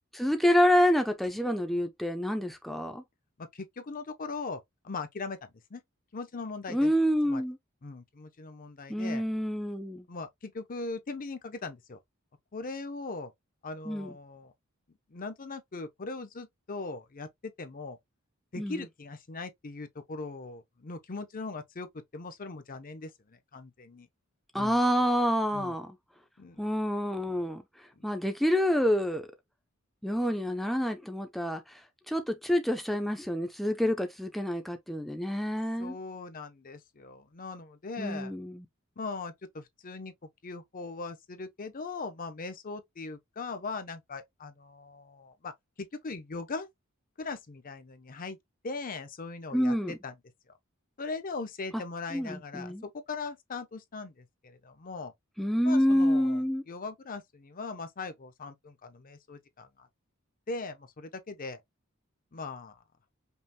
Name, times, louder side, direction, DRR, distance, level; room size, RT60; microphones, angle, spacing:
voice 1, 0.1-3.0 6.7-7.6 8.9-10.0 13.9-14.1 18.6-18.8 24.5-26.0 26.6-27.6 28.0-29.3 30.0-31.8 32.1-35.9 38.0-38.6 49.5-50.0 51.7-51.8 52.1-52.8 55.4-56.6, equal, ahead, 0.5 m, -27 dB
voice 2, 3.4-5.4 5.7-5.8 6.1-6.9 7.3-7.4 7.8-9.2 10.1-12.0 12.5-13.3 13.6-14.5 15.1-18.0 18.5-24.1 24.5-24.8 25.5-25.7 26.4-26.6 28.0-28.1 35.8-38.3 39.0-40.1 40.4-45.5 45.8-46.7 47.2-48.4 48.6-50.1 51.0-55.1 55.6-59.9 60.5-61.6 62.3-62.8, left 3 dB, 40° left, 0.7 m, -40 dB
5.4 x 2.4 x 2.8 m
head